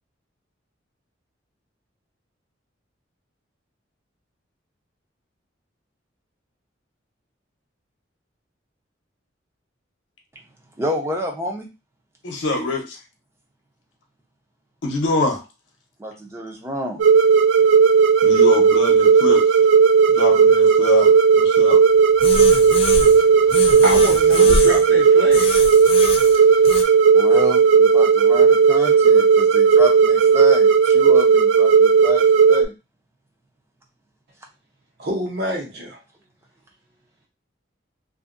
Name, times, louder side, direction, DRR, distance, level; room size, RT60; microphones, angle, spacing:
voice 1, 10.8-11.7 16.0-17.0 27.1-32.7, left 1 dB, 15° right, 0.6 m, -29 dB
voice 2, 12.2-13.0 14.8-15.4 18.2-19.6 20.1-21.8, left 2 dB, 70° left, 0.8 m, -25 dB
sound 1, 17.0-32.6, right 6 dB, 70° right, 0.3 m, -14 dB
sound 2, 22.2-23.2 23.5-24.9 25.3-26.8, left 3 dB, 30° left, 0.3 m, -26 dB
voice 3, 23.2-25.5 35.0-36.0, equal, 55° right, 0.8 m, -28 dB
2.7 x 2.6 x 2.5 m
head